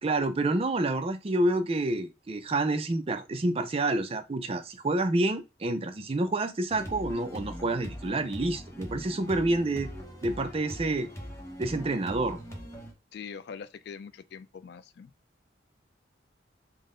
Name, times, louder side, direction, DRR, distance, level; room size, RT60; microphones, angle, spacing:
voice 1, 0.0-9.9 10.2-11.1 11.6-12.4, right 2 dB, 30° right, 0.4 m, -28 dB
sound 1, 6.7-12.9, equal, 15° left, 0.8 m, -41 dB
voice 2, 13.1-15.1, left 6 dB, 60° left, 0.3 m, -43 dB
3.7 x 2.1 x 3.7 m
head